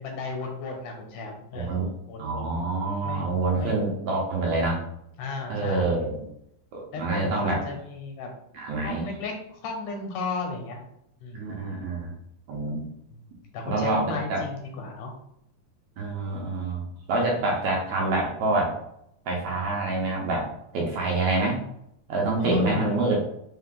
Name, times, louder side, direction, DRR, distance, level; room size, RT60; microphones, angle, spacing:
voice 1, 0.0-2.6 3.0-3.8 5.2-6.1 6.9-8.3 8.8-10.9 11.2-11.4 13.5-15.1 22.4-23.1, left 3 dB, 80° left, 1 dB, 2.4 m, -34 dB
voice 2, 1.5-1.9 2.2-4.8 5.5-6.3 6.7-7.6 8.5-9.0 11.3-12.1 12.5-12.9 13.7-14.4 16.0-16.8 17.1-18.7 19.3-21.6 22.1-23.2, right 2 dB, 75° right, -1 dB, 1.9 m, -26 dB
5.5 x 2.1 x 3.6 m, 0.75 s
omnidirectional pair, 3.5 m